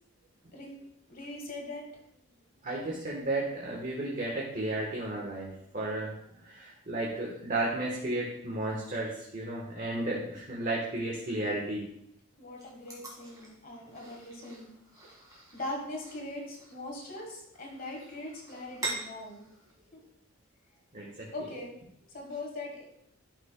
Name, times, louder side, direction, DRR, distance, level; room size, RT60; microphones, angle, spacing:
voice 1, 1.1-1.8 12.4-14.7 15.0-15.1 15.5-19.5 19.9-20.0 21.3-21.7 22.1-22.8, left 2 dB, 40° left, -1 dB, 1.4 m, -41 dB
voice 2, 2.6-11.8 20.9-21.3, right 2 dB, 35° right, -3 dB, 1.1 m, -33 dB
sound 1, 12.6-19.7, right 2 dB, 15° right, 1.9 m, -44 dB
12.0 x 5.5 x 2.2 m, 0.75 s
head